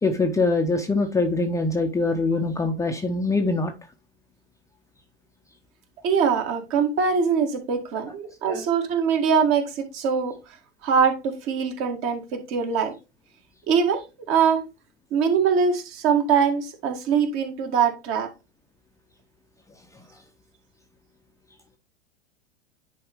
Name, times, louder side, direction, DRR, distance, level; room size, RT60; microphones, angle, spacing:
voice 1, 0.0-3.7 8.5-8.7, left 3 dB, 10° left, 0.7 m, -23 dB
voice 2, 6.0-10.3 10.8-12.9 13.7-14.6 15.1-18.3, right 6 dB, 40° right, 2.0 m, -23 dB
10.0 x 4.2 x 3.5 m
figure-of-eight pair, 95°, 33 cm